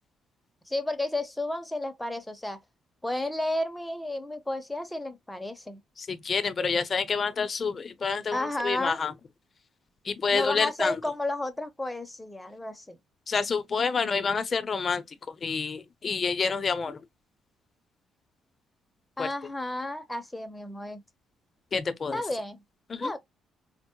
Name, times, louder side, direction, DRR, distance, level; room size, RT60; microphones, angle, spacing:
voice 1, 0.7-2.6 3.0-5.8 8.3-9.0 10.3-13.0 19.2-21.0 22.1-22.6 23.0-23.2, left 1 dB, 10° left, 0.7 m, -32 dB
voice 2, 6.0-9.1 10.0-10.9 13.3-17.0 19.2-19.3 21.7-22.2 22.9-23.1, left 5 dB, 40° left, 0.6 m, -28 dB
4.4 x 2.0 x 2.8 m
cardioid pair, 90°, 0 cm